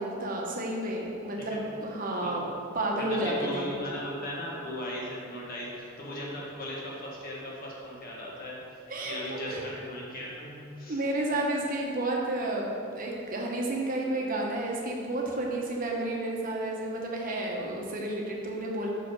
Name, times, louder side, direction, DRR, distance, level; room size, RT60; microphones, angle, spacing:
voice 1, 0.0-2.5 2.7-3.7 8.9-9.6 10.9-18.9, right 1 dB, 40° right, -1 dB, 1.0 m, -31 dB
voice 2, 3.0-8.6 9.0-11.0, left 1 dB, 45° left, -4 dB, 1.5 m, -37 dB
5.9 x 5.1 x 5.3 m, 2.6 s
head